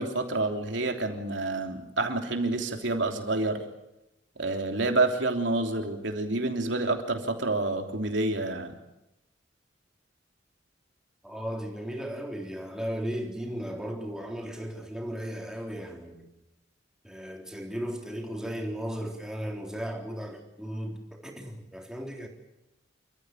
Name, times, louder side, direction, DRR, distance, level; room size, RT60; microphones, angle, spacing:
voice 1, 0.0-3.6 4.4-8.7, right 2 dB, 75° right, 3.3 m, -28 dB
voice 2, 11.2-16.3 17.0-22.3, equal, 5° right, 3.8 m, -36 dB
29.0 x 14.5 x 9.3 m
head